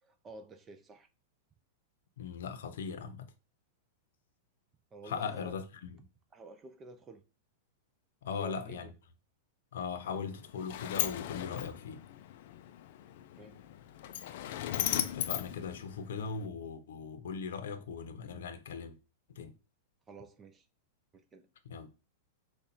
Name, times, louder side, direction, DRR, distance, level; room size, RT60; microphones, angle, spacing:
voice 1, 0.0-1.1 4.9-5.5 6.3-7.2 8.3-8.9 13.4-13.6 20.1-20.7 21.1-21.5, right 3 dB, 15° right, 0.5 m, -51 dB
voice 2, 2.2-3.3 5.0-6.1 8.2-8.9 9.7-12.0 14.7-18.9 19.3-19.5 21.6-21.9, left 6 dB, 80° left, 0.7 m, -39 dB
Sliding door, 10.1-16.5, left 12 dB, 55° left, 0.4 m, -38 dB
5.2 x 2.4 x 4.3 m
supercardioid pair, 155°, 0 cm